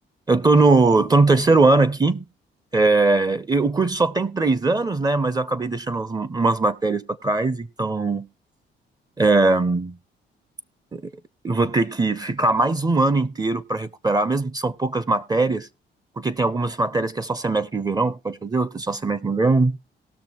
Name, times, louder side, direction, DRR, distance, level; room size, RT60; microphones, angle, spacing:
voice 1, 0.3-2.2 2.7-8.3 9.2-10.0 10.9-11.1 11.4-15.7 16.2-19.8, right 3 dB, 20° right, 0.5 m, -20 dB
18.5 x 6.4 x 2.9 m
cardioid pair, 90°, 20 cm